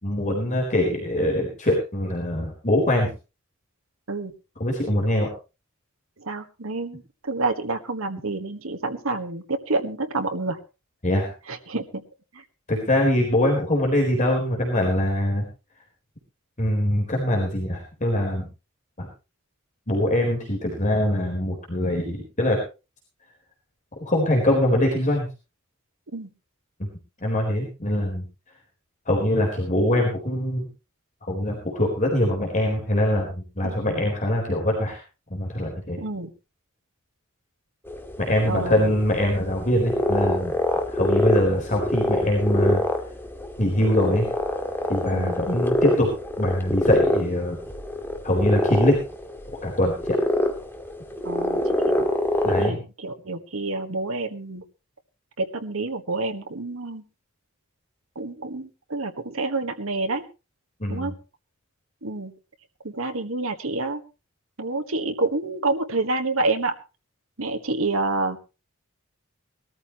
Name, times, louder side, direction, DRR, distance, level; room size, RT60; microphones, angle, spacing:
voice 1, 0.0-3.1 4.6-5.3 11.0-11.3 12.7-15.4 16.6-18.5 19.0-19.1 19.9-22.6 24.1-25.3 26.8-26.9 27.2-28.2 29.1-30.7 31.3-35.0 35.3-36.0 38.2-40.5 40.9-42.8 43.6-44.3 44.9-46.1 46.4-47.6 48.2-49.0 49.6-50.2 52.4-52.8 60.8-61.1, left 1 dB, 35° left, 0 dB, 4.1 m, -23 dB
voice 2, 6.2-10.6 11.5-12.0 26.1-26.3 33.6-34.0 36.0-36.3 38.4-38.9 45.1-45.4 51.2-51.6 51.9-52.1 52.5-54.6 55.4-57.0 58.1-60.2 60.9-61.1 62.0-62.3 62.8-64.0 64.6-66.7 67.4-68.4, right 3 dB, 80° right, 6 dB, 1.5 m, -28 dB
sound 1, 37.9-52.7, left 1 dB, 10° left, 1.9 m, -26 dB
20.5 x 13.5 x 3.0 m, 0.30 s
head